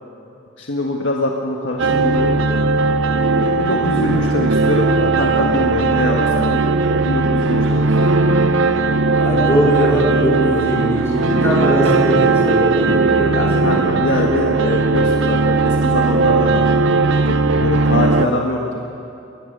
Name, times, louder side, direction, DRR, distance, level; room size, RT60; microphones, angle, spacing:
voice 1, 0.6-2.5 3.3-6.6 6.9-8.3 13.3-16.6 17.2-18.8, left 1 dB, 70° left, 0 dB, 1.6 m, -23 dB
sound 1, 1.8-18.3, right 3 dB, 75° right, 0.7 m, -17 dB
voice 2, 9.2-13.9, equal, 15° left, -5 dB, 4.3 m, -20 dB
23.0 x 19.5 x 6.8 m, 2.7 s
head